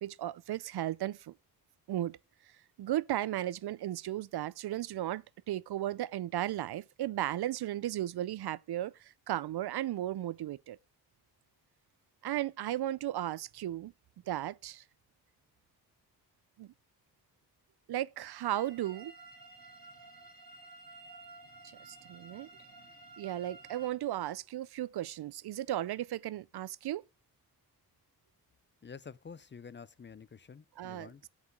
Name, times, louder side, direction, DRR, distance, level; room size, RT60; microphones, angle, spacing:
voice 1, 0.0-1.3 1.9-2.2 2.8-10.8 12.2-13.9 14.3-14.8 16.6-16.7 17.9-19.1 21.8-22.5 23.2-27.0 30.8-31.3, right 13 dB, 85° right, 0.5 m, -35 dB
sound 1, 18.4-23.9, right 3 dB, 65° right, 2.0 m, -53 dB
voice 2, 28.8-31.2, left 6 dB, 30° left, 0.5 m, -49 dB
8.2 x 4.9 x 5.1 m
cardioid pair, 60°, 38 cm